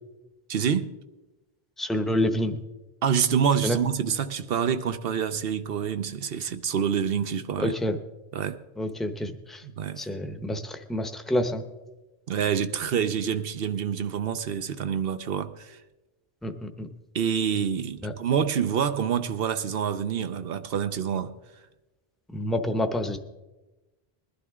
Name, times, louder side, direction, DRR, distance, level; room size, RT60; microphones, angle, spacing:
voice 1, 0.5-0.9 3.0-7.7 8.3-8.6 9.6-10.1 12.3-15.8 17.1-21.4, right 7 dB, 70° right, 0.9 m, -27 dB
voice 2, 1.8-2.6 3.6-3.8 7.6-8.0 8.8-9.6 10.0-11.6 16.4-16.9 18.0-18.1 22.3-23.2, left 1 dB, ahead, 0.7 m, -28 dB
21.0 x 11.5 x 3.6 m
omnidirectional pair, 1.0 m